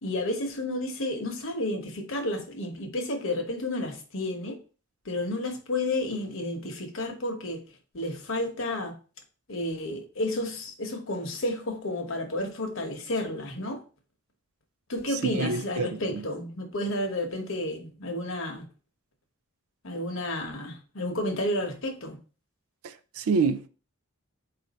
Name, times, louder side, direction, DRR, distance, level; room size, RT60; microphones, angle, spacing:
voice 1, 0.0-4.6 5.0-7.6 7.9-9.0 9.5-13.8 14.9-18.7 19.8-22.2, left 1 dB, 65° left, 0.9 m, -31 dB
voice 2, 15.4-16.2 22.8-23.7, right 4 dB, 80° right, 0.4 m, -28 dB
4.5 x 2.6 x 4.0 m
head